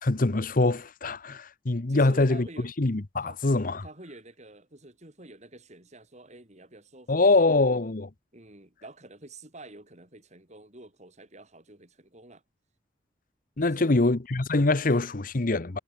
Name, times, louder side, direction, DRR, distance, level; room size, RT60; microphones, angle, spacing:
voice 1, 0.0-2.5 2.8-3.8 7.1-8.1 13.6-15.8, left 2 dB, 50° left, 0.9 m, -24 dB
voice 2, 1.9-2.7 3.2-3.4 3.8-7.4 8.3-12.4 13.6-14.1, right 2 dB, 40° right, 5.9 m, -48 dB
head